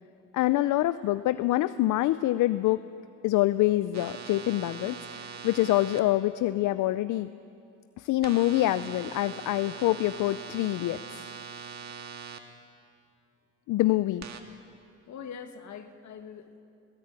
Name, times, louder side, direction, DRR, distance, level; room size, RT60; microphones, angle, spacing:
voice 1, 0.3-2.8 3.2-7.3 8.0-11.3 13.7-14.2, left 16 dB, 85° left, 13 dB, 0.6 m, -26 dB
sound 1, 3.9-6.0 8.2-12.4 14.2-14.4, right 7 dB, 65° right, 1.8 m, -42 dB
voice 2, 15.1-16.6, left 7 dB, 70° left, 8 dB, 1.7 m, -43 dB
19.5 x 17.0 x 9.0 m, 2.5 s
cardioid pair, 90°, 30 cm